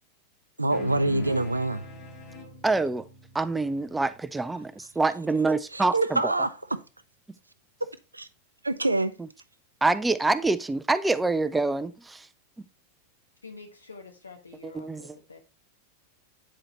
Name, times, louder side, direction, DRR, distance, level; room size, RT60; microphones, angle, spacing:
voice 1, 0.6-1.8 5.7-6.5 8.1-8.3 8.6-9.1, right 2 dB, 80° right, 0.5 m, -25 dB
sound 1, 0.7-5.4, left 1 dB, 35° left, 1.8 m, -43 dB
voice 2, 2.6-3.1 3.3-6.3 9.8-12.3 14.7-15.0, right 3 dB, 10° right, 0.4 m, -26 dB
voice 3, 13.4-15.4, left 4 dB, 80° left, 1.3 m, -47 dB
8.4 x 4.9 x 2.9 m
figure-of-eight pair, 90°, 0 cm